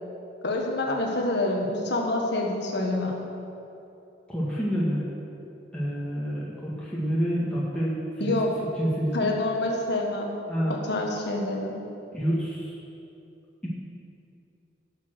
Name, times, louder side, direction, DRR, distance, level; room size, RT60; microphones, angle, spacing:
voice 1, 0.4-3.2 8.2-8.5 9.1-10.3 10.7-11.7, left 2 dB, 65° left, 0 dB, 1.6 m, -27 dB
voice 2, 4.3-5.0 5.7-8.0 8.2-9.4 10.5-10.8 12.1-12.8, equal, 5° left, -7 dB, 1.7 m, -28 dB
12.5 x 7.2 x 6.3 m, 2.8 s
head